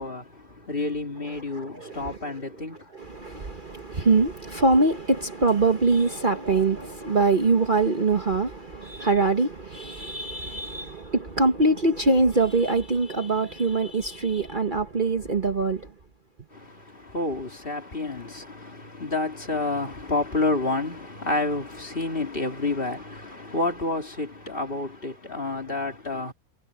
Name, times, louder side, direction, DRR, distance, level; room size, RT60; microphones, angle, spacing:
voice 1, 0.0-2.9 16.5-26.3, left 2 dB, 35° left, 2.9 m, -29 dB
voice 2, 1.5-2.3 2.9-15.9, right 3 dB, 35° right, 1.4 m, -23 dB
omnidirectional pair, 1.6 m